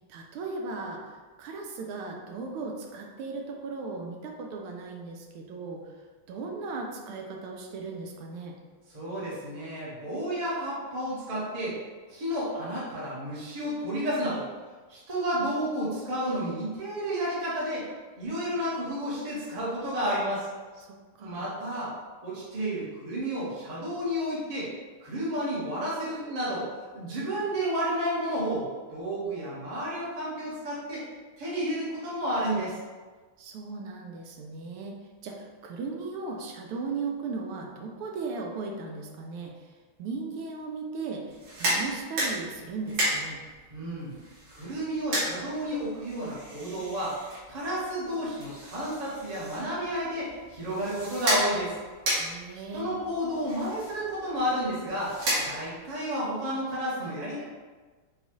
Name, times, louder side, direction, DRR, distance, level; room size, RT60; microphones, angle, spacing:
voice 1, 0.1-1.0 1.4-5.9 6.3-8.6 20.8-21.5 33.4-35.0 35.2-39.5 40.0-43.4 52.2-52.9, right 4 dB, 80° right, 1 dB, 1.5 m, -37 dB
voice 2, 8.9-11.8 12.1-14.5 14.9-17.9 18.2-20.5 21.2-21.9 22.2-24.7 25.0-26.7 26.9-31.0 31.4-32.7 43.7-44.1 44.5-47.2 47.5-51.7 52.7-57.4, equal, 30° right, -7 dB, 0.7 m, -31 dB
sound 1, 41.3-55.9, right 1 dB, 65° right, 1.8 m, -34 dB
5.5 x 2.3 x 2.9 m, 1.4 s
omnidirectional pair, 2.4 m